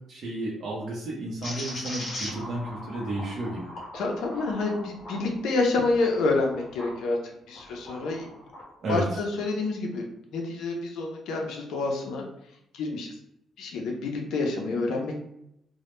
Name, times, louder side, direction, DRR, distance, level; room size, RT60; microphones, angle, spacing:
voice 1, 0.1-3.7 8.8-9.0, right 2 dB, 50° right, -5 dB, 0.5 m, -32 dB
sound 1, 1.4-7.0 7.5-8.7, left 1 dB, 45° left, 0.8 m, -40 dB
voice 2, 3.9-8.3 8.9-10.0 10.3-12.2 12.7-13.2 13.6-15.2, left 3 dB, 85° left, 1 dB, 0.4 m, -28 dB
2.1 x 2.0 x 3.0 m, 0.79 s
cardioid pair, 110°, 0 cm